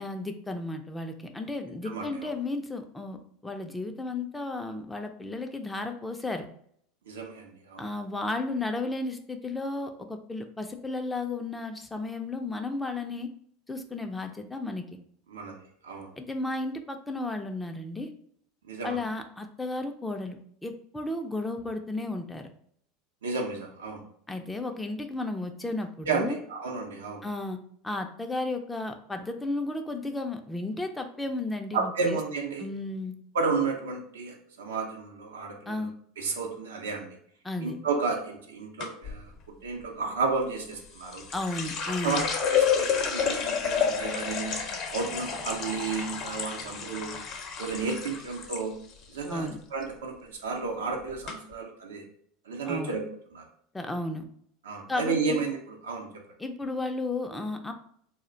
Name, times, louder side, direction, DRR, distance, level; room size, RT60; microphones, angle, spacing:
voice 1, 0.0-3.2 3.4-6.5 7.8-13.3 13.7-14.9 16.2-18.1 18.8-22.5 24.3-26.4 27.2-27.6 27.8-32.2 32.6-33.1 35.7-35.9 37.4-37.8 41.3-42.3 49.3-49.6 52.6-52.9 53.7-54.3 54.9-55.4 56.4-57.7, left 2 dB, 10° left, 5 dB, 0.4 m, -33 dB
voice 2, 1.8-2.3 7.1-7.8 15.3-16.1 18.7-19.0 23.2-24.0 26.1-27.2 31.7-32.7 33.3-35.9 36.2-37.2 37.6-39.3 39.6-41.2 42.0-44.6 44.9-47.2 47.6-48.7 49.1-52.0 52.5-53.0 53.3-53.4 54.6-56.1, right 4 dB, 80° right, 2 dB, 0.6 m, -32 dB
sound 1, 38.8-39.2 40.7-48.6 48.9-49.5 49.8-50.2 50.8-50.9 51.3-51.4, left 7 dB, 50° left, 0.7 m, -30 dB
2.4 x 2.1 x 3.8 m, 0.65 s
hypercardioid pair, 85°, 0 cm